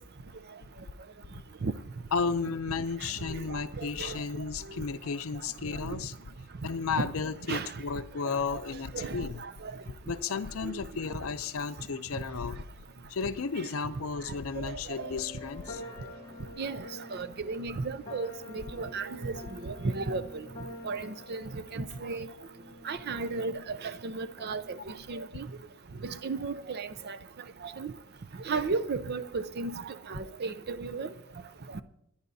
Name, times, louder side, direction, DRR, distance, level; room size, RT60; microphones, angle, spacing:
voice 1, 2.1-6.1 6.6-9.4 10.1-12.6 13.0-15.8, left 5 dB, 65° left, 0.5 m, -33 dB
sound 1, 2.7-2.8 3.7-3.8 4.8-4.9 5.8-5.9 6.9-7.0 7.9-8.0 8.5-8.7 9.0-9.1 10.0-10.1 11.1-11.2 12.2-12.3 13.2-13.3 14.3-14.4 15.3-15.4 16.1-16.5, right 3 dB, 85° right, 0.7 m, -40 dB
voice 2, 3.8-4.2 5.9-6.0 7.0-7.1 7.5-7.7 8.2-8.4 8.9-9.5 10.6-10.8 13.6-13.7 14.6-14.7 16.6-16.8 17.1-20.4 20.8-22.3 22.9-25.5 26.0-27.2 27.6-27.9 28.5-31.1, right 4 dB, 45° right, 0.5 m, -34 dB
sound 2, 14.9-24.8, left 1 dB, 20° left, 2.2 m, -47 dB
28.0 x 10.0 x 2.7 m
head